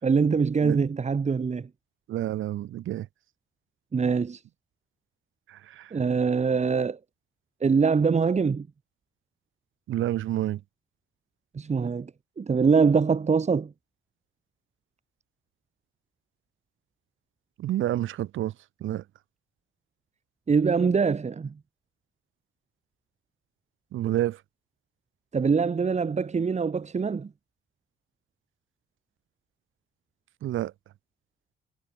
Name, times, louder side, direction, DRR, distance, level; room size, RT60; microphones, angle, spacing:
voice 1, 0.0-1.7 3.9-4.4 5.9-7.0 7.6-8.7 11.5-12.1 12.4-13.7 20.5-21.5 25.3-27.3, right 5 dB, 35° right, 2.8 m, -23 dB
voice 2, 2.1-3.1 5.5-5.9 9.9-10.6 17.6-18.5 18.8-19.0 23.9-24.4 30.4-30.7, right 13 dB, 80° right, 5.6 m, -29 dB
cardioid pair, 90°, 20 cm